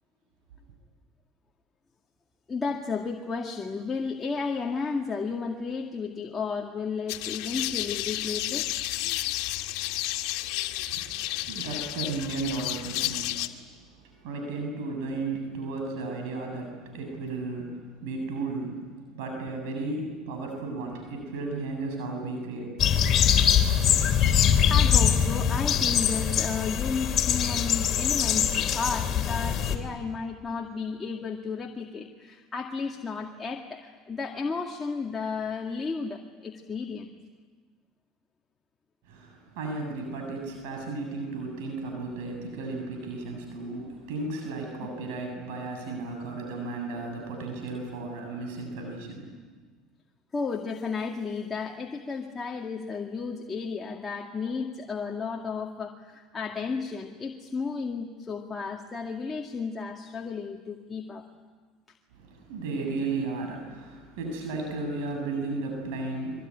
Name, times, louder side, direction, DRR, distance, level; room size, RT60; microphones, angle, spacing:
voice 1, 2.5-8.7 24.3-24.4 24.7-37.1 50.3-61.3, left 5 dB, 20° left, 1 dB, 2.2 m, -33 dB
sound 1, 7.1-13.5, left 16 dB, 70° left, 1.9 m, -31 dB
voice 2, 10.9-13.4 14.0-18.9 19.1-22.8 39.1-49.3 62.1-66.5, right 3 dB, 80° right, 2 dB, 7.6 m, -34 dB
sound 2, 22.8-29.8, left 8 dB, 40° left, 3.6 m, -23 dB
25.0 x 23.5 x 10.0 m, 1.4 s
supercardioid pair, 110°, 0 cm